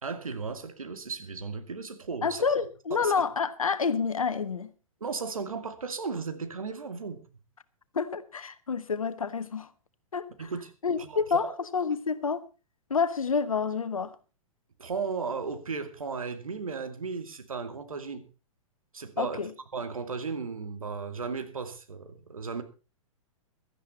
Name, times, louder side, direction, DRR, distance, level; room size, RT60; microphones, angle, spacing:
voice 1, 0.0-2.4 2.9-3.1 5.0-7.2 10.4-10.7 11.0-11.5 14.8-18.3 18.9-19.4 19.7-22.6, right 5 dB, 75° right, 2.4 m, -35 dB
voice 2, 2.2-4.7 7.9-9.7 10.1-10.5 10.8-12.4 12.9-14.1 19.2-19.5, left 5 dB, 75° left, 1.3 m, -28 dB
16.5 x 13.0 x 4.2 m
figure-of-eight pair, 110°, 18 cm